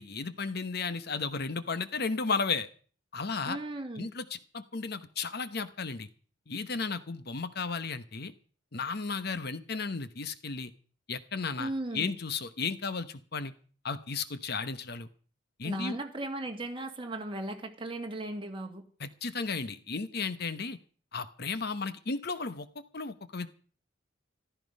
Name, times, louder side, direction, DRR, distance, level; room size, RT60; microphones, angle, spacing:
voice 1, 0.0-2.7 3.1-3.6 4.0-6.1 6.5-8.3 8.7-10.7 11.1-13.5 13.8-15.1 15.6-16.0 19.0-20.8 21.1-22.7 22.9-23.5, left 4 dB, 55° left, 13 dB, 1.0 m, -34 dB
voice 2, 3.5-4.1 11.6-12.1 15.6-18.9, right 2 dB, 25° right, 4 dB, 2.1 m, -37 dB
14.5 x 13.5 x 5.4 m, 0.42 s
head